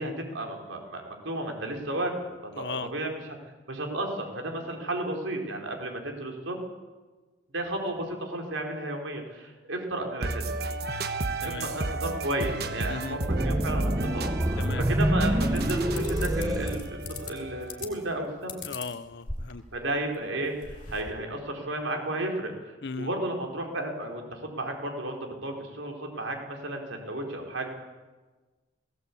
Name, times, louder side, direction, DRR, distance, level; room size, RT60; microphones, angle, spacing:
voice 1, 0.0-2.3 2.6-2.7 2.9-3.2 3.7-6.6 7.5-10.5 11.4-14.6 14.9-18.6 19.7-22.5 23.0-27.7, right 1 dB, 85° right, 2 dB, 4.2 m, -33 dB
voice 2, 2.6-2.9 11.4-11.7 12.9-13.2 14.6-14.8 18.6-19.6 22.8-23.1, left 4 dB, 60° left, 14 dB, 0.8 m, -36 dB
sound 1, 10.2-18.0, right 3 dB, 55° right, 1.3 m, -34 dB
sound 2, 13.3-17.5, right 1 dB, 20° right, 0.9 m, -27 dB
sound 3, 15.5-17.3 17.7-18.1 18.5-19.8 20.1-20.2 20.4-21.1, left 3 dB, 40° left, 3.0 m, -38 dB
19.0 x 17.0 x 8.5 m, 1.3 s
head